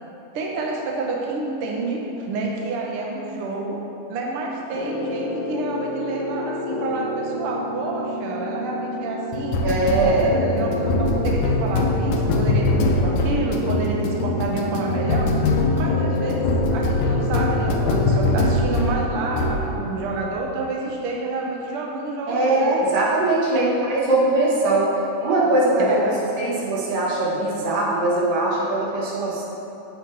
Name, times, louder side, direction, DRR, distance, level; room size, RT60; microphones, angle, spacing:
voice 1, 0.3-3.8 4.1-9.6 10.0-15.3 15.7-22.7 23.5-23.7 25.8-26.2, right 3 dB, 60° right, -1 dB, 1.6 m, -28 dB
sound 1, 4.7-19.0 19.3-19.7, left 2 dB, 80° left, 2.4 m, -23 dB
voice 2, 9.6-10.3 22.3-24.9 25.2-26.0 26.4-29.4, right 2 dB, 90° right, -6 dB, 3.5 m, -21 dB
13.0 x 8.2 x 3.6 m, 2.9 s
omnidirectional pair, 3.7 m